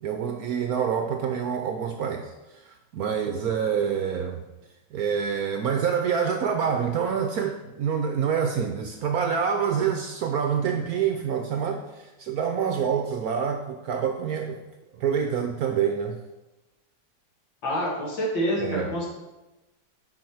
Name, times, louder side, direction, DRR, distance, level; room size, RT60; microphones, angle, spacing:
voice 1, 0.0-2.3 2.9-4.4 4.9-14.6 15.0-16.2 18.6-18.9, right 7 dB, 70° right, 5 dB, 0.9 m, -26 dB
voice 2, 17.6-19.1, equal, 75° left, -3 dB, 2.8 m, -27 dB
9.2 x 5.6 x 4.6 m, 1.0 s
omnidirectional pair, 2.1 m